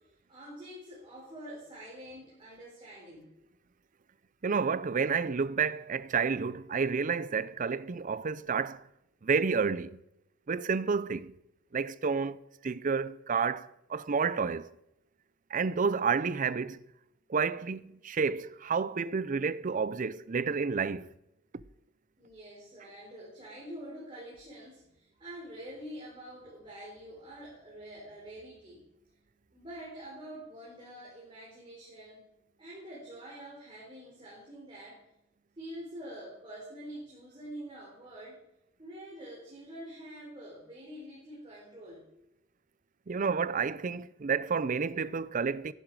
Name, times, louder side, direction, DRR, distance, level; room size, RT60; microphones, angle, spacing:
voice 1, 0.3-3.3 22.2-28.8 29.5-32.2 32.6-35.0 35.6-38.4 38.8-42.1, right 1 dB, 25° right, 4.1 m, -46 dB
voice 2, 4.4-8.9 9.2-10.0 10.5-11.3 11.7-14.7 15.5-16.8 17.3-21.1 43.1-45.7, right 5 dB, 40° right, 0.5 m, -30 dB
14.5 x 11.0 x 4.8 m
head